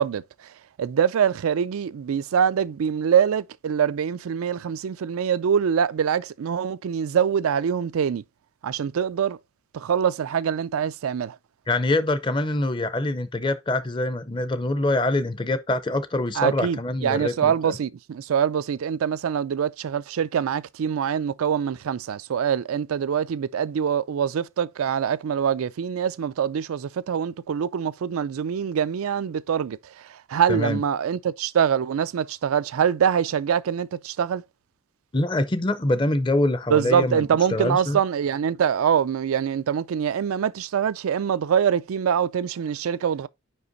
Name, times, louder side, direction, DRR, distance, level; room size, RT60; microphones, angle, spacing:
voice 1, 0.0-8.2 8.6-9.4 9.7-11.4 16.4-34.4 36.7-43.3, right 8 dB, 85° right, 0.4 m, -24 dB
voice 2, 11.7-17.8 30.5-30.8 35.1-38.0, left 2 dB, 20° left, 0.5 m, -25 dB
5.4 x 5.1 x 3.9 m
head